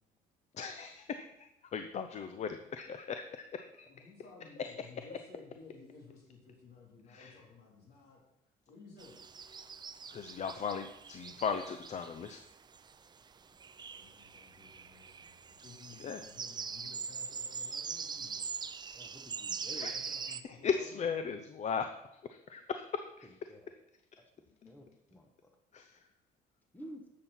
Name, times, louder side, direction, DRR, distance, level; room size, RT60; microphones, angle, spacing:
voice 1, 0.6-3.9 4.6-4.7 7.1-7.4 10.1-12.4 16.0-16.2 19.8-19.9 20.3-20.4 20.6-21.9 22.5-23.3 24.6-24.7 25.7-25.9, left 6 dB, 45° left, 8 dB, 0.7 m, -37 dB
voice 2, 3.9-8.2 8.7-9.2 13.9-18.4 19.8-20.9, left 4 dB, 70° left, -2 dB, 3.6 m, -55 dB
sound 1, 9.0-20.4, right 6 dB, 25° right, 0.5 m, -43 dB
voice 3, 18.9-19.9 23.2-23.8 24.2-25.5 26.7-27.1, equal, 10° left, 4 dB, 1.2 m, -52 dB
11.0 x 7.6 x 4.3 m, 0.84 s
cardioid pair, 110°, 17 cm